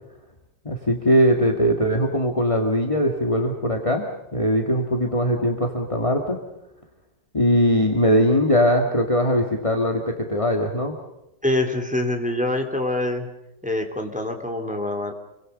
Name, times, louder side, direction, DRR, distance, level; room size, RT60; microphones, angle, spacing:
voice 1, 0.6-4.0 4.3-6.4 7.3-10.9, equal, 20° left, 2 dB, 2.2 m, -20 dB
voice 2, 11.4-13.3 13.6-15.1, left 1 dB, 5° right, 3 dB, 3.3 m, -25 dB
29.0 x 24.0 x 5.5 m, 0.91 s
omnidirectional pair, 1.9 m